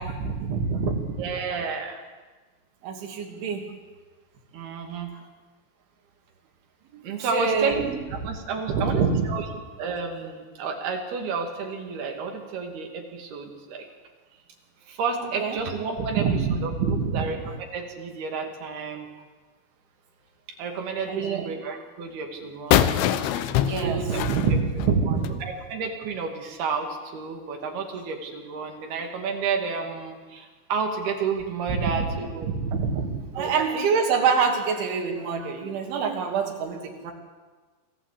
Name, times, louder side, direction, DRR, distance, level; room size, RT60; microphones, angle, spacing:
voice 1, 0.0-1.2 2.8-3.7 6.9-7.7 8.7-9.3 15.2-15.6 16.0-17.5 21.1-21.5 23.6-25.4 31.7-32.1 32.6-37.1, right 5 dB, 80° right, 2 dB, 5.1 m, -26 dB
voice 2, 1.2-2.0 4.5-5.2 7.0-9.4 9.8-13.9 14.9-16.2 16.6-16.7 17.1-17.4 17.7-19.1 20.6-23.0 23.7-24.2 25.1-32.5 33.4-33.9 35.4-35.5, right 5 dB, 60° right, 3 dB, 4.1 m, -31 dB
sound 1, 22.7-25.4, left 11 dB, 90° left, 3.5 m, -24 dB
26.0 x 15.0 x 8.5 m, 1.3 s
omnidirectional pair, 5.3 m